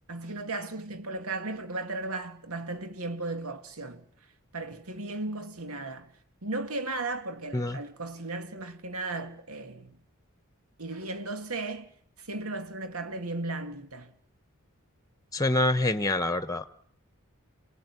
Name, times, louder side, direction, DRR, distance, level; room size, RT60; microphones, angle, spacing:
voice 1, 0.1-4.1 4.5-6.1 6.4-10.0 10.8-11.9 12.2-14.2, right 2 dB, 80° right, 2.3 m, -35 dB
voice 2, 15.3-16.7, left 2 dB, 15° left, 1.1 m, -26 dB
28.0 x 18.5 x 9.7 m
head